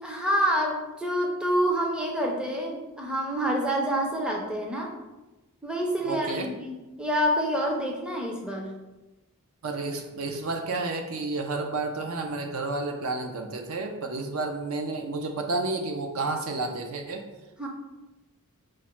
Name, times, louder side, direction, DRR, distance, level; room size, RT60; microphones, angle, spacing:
voice 1, 0.0-4.9 5.6-8.7 17.6-17.7, equal, 5° right, -1 dB, 0.5 m, -27 dB
voice 2, 6.0-6.5 9.6-17.3, right 3 dB, 65° right, 4 dB, 0.5 m, -31 dB
4.9 x 2.1 x 4.3 m, 1.1 s
head